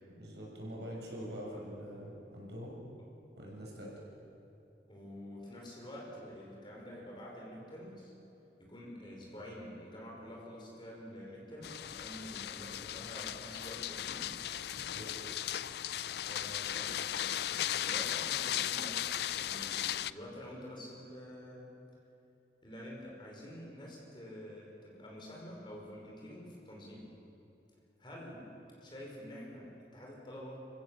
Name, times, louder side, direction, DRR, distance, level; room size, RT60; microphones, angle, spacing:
voice 1, 0.2-2.7 3.4-3.9 14.7-15.3, equal, 70° right, -3 dB, 6.3 m, -44 dB
voice 2, 4.9-8.1 8.6-14.3 16.2-17.3 17.7-19.0 19.4-21.7 22.6-27.1 28.0-28.5 28.8-30.6, equal, 25° left, -3 dB, 5.4 m, -48 dB
sound 1, 11.6-20.1, left 11 dB, 65° left, 0.4 m, -36 dB
29.0 x 15.5 x 7.3 m, 2.9 s
head